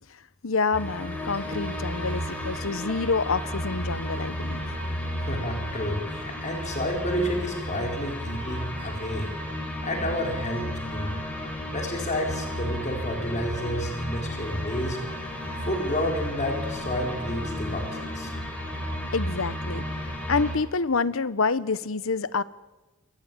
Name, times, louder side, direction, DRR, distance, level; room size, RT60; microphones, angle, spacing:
voice 1, 0.4-4.6 19.1-22.4, left 4 dB, 90° left, 17 dB, 1.0 m, -27 dB
sound 1, 0.7-20.6, equal, 10° left, 4.7 m, -33 dB
voice 2, 5.3-9.3 9.8-11.2 11.7-15.0 15.6-18.3, left 1 dB, 35° left, 1 dB, 4.4 m, -30 dB
27.5 x 14.5 x 9.2 m, 1.1 s
head